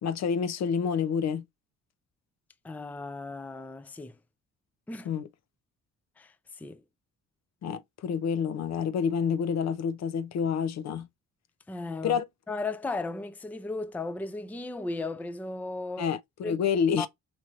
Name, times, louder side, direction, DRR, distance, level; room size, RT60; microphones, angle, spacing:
voice 1, 0.0-1.4 5.0-5.3 7.6-11.1 12.0-12.3 16.0-17.1, left 7 dB, 60° left, 0.7 m, -28 dB
voice 2, 2.6-4.2 4.9-5.1 6.2-6.8 11.7-12.2 12.5-16.1 16.4-16.6 17.0-17.1, left 3 dB, 5° left, 0.4 m, -36 dB
4.4 x 3.0 x 2.4 m
cardioid pair, 90°, 30 cm